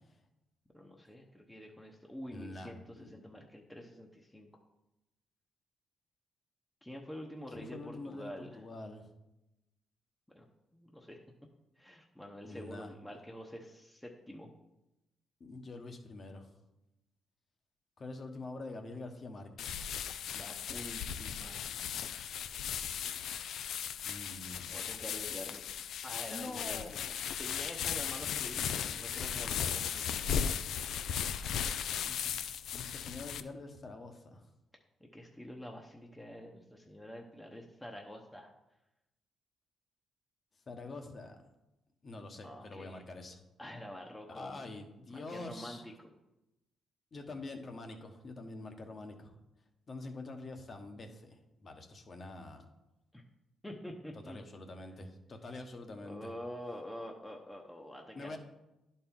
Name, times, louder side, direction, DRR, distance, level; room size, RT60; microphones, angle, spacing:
voice 1, 0.7-4.5 6.8-8.6 10.3-10.5 10.7-11.2 11.8-14.5 20.3-21.7 24.7-25.6 26.0-26.9 27.4-30.5 35.1-38.5 42.4-43.0 43.6-44.7 45.1-46.1 53.1-53.2 53.6-54.4 56.0-58.4, equal, 5° left, 0 dB, 0.8 m, -47 dB
voice 2, 2.3-3.1 7.5-9.1 12.4-12.9 15.4-16.5 18.0-19.8 24.0-24.8 26.3-27.1 31.9-32.4 32.7-34.4 40.7-41.4 42.0-43.4 44.3-45.8 47.1-49.3 49.9-52.7 54.3-56.3 58.1-58.4, left 2 dB, 45° left, 5 dB, 1.1 m, -46 dB
sound 1, 19.6-33.4, left 8 dB, 75° left, 0.4 m, -37 dB
11.0 x 4.4 x 3.7 m, 0.94 s
cardioid pair, 85°, 0 cm